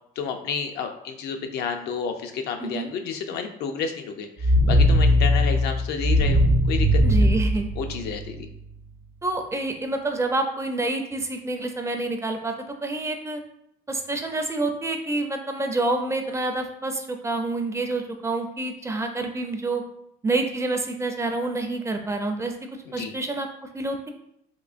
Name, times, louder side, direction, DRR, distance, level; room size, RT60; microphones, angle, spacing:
voice 1, 0.2-7.3 7.8-8.5 22.9-23.1, left 6 dB, 75° left, 5 dB, 0.5 m, -31 dB
sound 1, 4.4-8.4, equal, 85° right, 0.7 m, -19 dB
voice 2, 7.0-7.7 9.2-12.5 12.8-13.4 13.9-19.8 20.2-22.5 22.9-23.5 23.7-24.1, right 2 dB, 15° right, 5 dB, 0.4 m, -27 dB
3.6 x 2.9 x 2.4 m, 0.74 s
cardioid pair, 110°, 17 cm